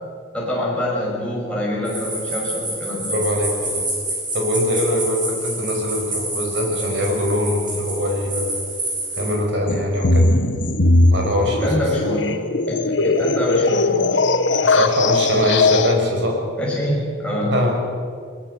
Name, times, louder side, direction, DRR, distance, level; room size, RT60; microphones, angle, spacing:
voice 1, 0.3-3.2 10.3-10.7 11.4-12.3 12.7-14.6 16.6-17.6, left 1 dB, 5° left, -5 dB, 6.1 m, -25 dB
sound 1, 1.8-9.3, right 2 dB, 25° right, 6.7 m, -28 dB
voice 2, 3.1-3.9 4.3-8.6 9.2-10.3 11.1-11.9 14.7-16.4 17.4-17.7, left 1 dB, 65° right, 1 dB, 5.8 m, -22 dB
sound 2, 9.7-15.9, left 2 dB, 65° left, 1.4 m, -19 dB
21.5 x 20.5 x 8.4 m, 2.1 s
head